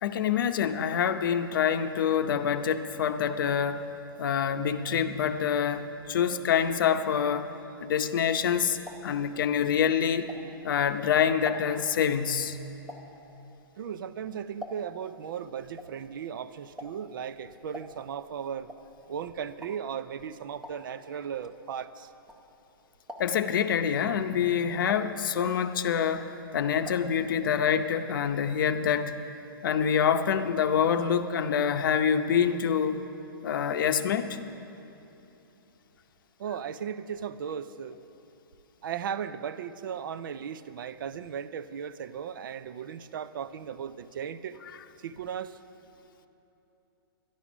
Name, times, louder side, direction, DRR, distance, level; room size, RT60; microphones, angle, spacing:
voice 1, 0.0-3.9 4.2-7.5 7.8-10.3 10.6-12.6 23.2-29.2 29.6-33.0 33.4-34.4, left 8 dB, 60° left, 9 dB, 0.7 m, -26 dB
sound 1, 8.8-10.8 11.2-15.1 15.4-22.7 23.0-23.6 24.1-25.8 26.1-27.2 27.4-27.5 27.8-27.9, equal, 5° right, 0.6 m, -46 dB
voice 2, 13.8-18.7 19.1-22.1 36.4-38.0 38.8-44.6 45.0-45.6, right 8 dB, 60° right, 13 dB, 0.5 m, -36 dB
12.5 x 11.5 x 6.1 m, 2.9 s
hypercardioid pair, 155°, 13 cm